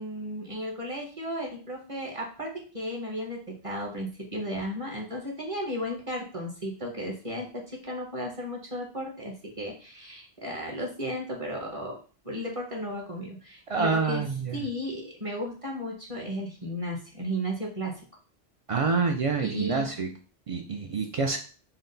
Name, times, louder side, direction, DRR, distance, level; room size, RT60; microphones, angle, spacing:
voice 1, 0.0-12.0 12.2-14.2 14.5-17.9 19.4-19.9, equal, 35° right, -1 dB, 0.8 m, -34 dB
voice 2, 13.7-14.6 18.7-20.1 20.5-21.4, right 4 dB, 65° right, 4 dB, 0.3 m, -27 dB
4.2 x 2.0 x 3.8 m, 0.37 s
omnidirectional pair, 1.1 m